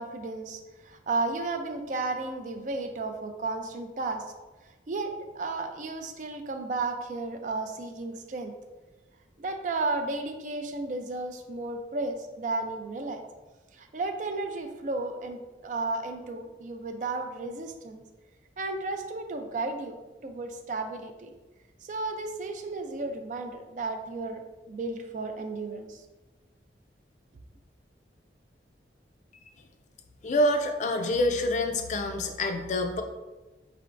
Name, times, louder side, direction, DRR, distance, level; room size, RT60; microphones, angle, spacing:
voice 1, 0.0-4.2 4.9-8.5 9.4-13.2 13.7-18.0 18.6-20.0 20.2-21.3 21.8-26.0, right 3 dB, 45° right, 6 dB, 0.4 m, -33 dB
voice 2, 30.2-33.0, left 1 dB, 40° left, 6 dB, 0.4 m, -26 dB
4.6 x 3.4 x 2.5 m, 1.2 s
head